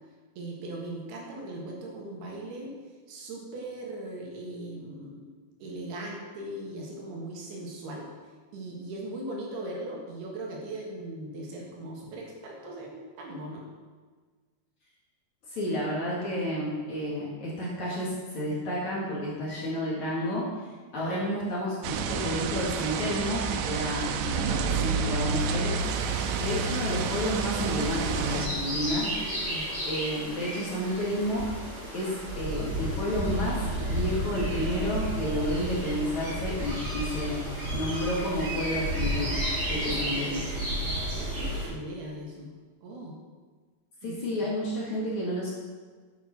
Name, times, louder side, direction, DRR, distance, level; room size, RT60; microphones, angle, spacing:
voice 1, 0.4-2.7 3.1-5.3 5.6-8.1 8.5-13.7 21.0-21.2 26.1-26.5 28.9-29.7 39.7-40.5 41.1-42.5 42.8-43.2 44.0-44.5, right 1 dB, 65° right, -2 dB, 3.4 m, -39 dB
voice 2, 15.5-20.5 20.9-21.8 22.1-25.8 26.4-29.1 29.9-31.5 31.9-37.4 37.7-39.4 39.7-40.4 44.0-45.5, equal, 50° left, -6 dB, 3.0 m, -31 dB
sound 1, 21.8-28.5, right 5 dB, 85° right, 3.1 m, -29 dB
sound 2, 25.8-41.7, equal, 15° right, 3.8 m, -32 dB
9.5 x 9.3 x 6.0 m, 1.5 s
omnidirectional pair, 5.2 m